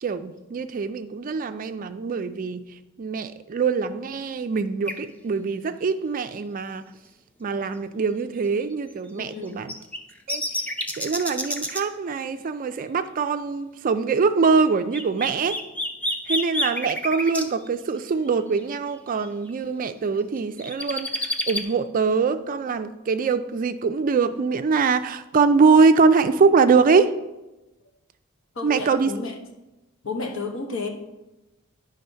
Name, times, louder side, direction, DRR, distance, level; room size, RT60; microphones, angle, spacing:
voice 1, 0.0-2.7 3.0-6.8 7.4-9.7 10.3-10.4 11.0-15.6 16.3-27.1 28.6-29.1, right 5 dB, 40° right, 11 dB, 0.3 m, -23 dB
sound 1, 4.9-5.0 8.9-9.0 9.7-11.8 14.9-17.4 18.6-18.7 19.1-19.2 20.4-21.6, equal, 5° left, 0.6 m, -28 dB
voice 2, 9.1-9.6 28.5-29.4 30.0-30.9, left 3 dB, 60° left, 4 dB, 1.1 m, -31 dB
10.0 x 3.4 x 5.6 m, 1.0 s
head